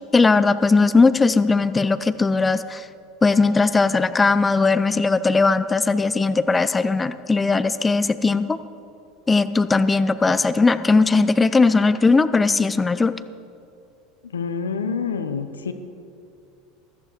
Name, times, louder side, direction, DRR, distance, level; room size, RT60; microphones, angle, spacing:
voice 1, 0.1-2.8 3.2-8.6 9.3-13.1, left 3 dB, 15° left, 14 dB, 0.6 m, -18 dB
voice 2, 14.2-15.7, left 5 dB, 80° left, 9 dB, 0.8 m, -27 dB
14.5 x 14.0 x 4.4 m, 2.6 s
figure-of-eight pair, 75°, 0 cm